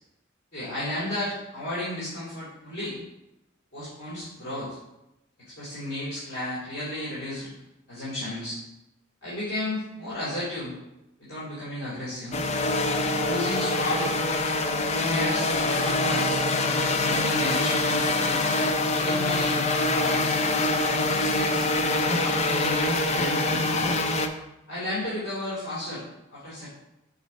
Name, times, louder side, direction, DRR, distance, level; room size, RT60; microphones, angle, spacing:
voice 1, 0.5-3.0 3.7-4.8 5.4-7.5 7.9-8.6 9.2-10.7 11.2-12.4 13.1-14.1 14.8-16.4 17.0-18.5 18.9-20.4 21.1-21.7 22.0-23.9 24.7-26.0 26.3-26.7, left 1 dB, 55° left, -9 dB, 2.4 m, -33 dB
sound 1, 12.3-24.3, left 2 dB, 35° left, 0.5 m, -25 dB
5.9 x 4.1 x 5.2 m, 0.90 s
head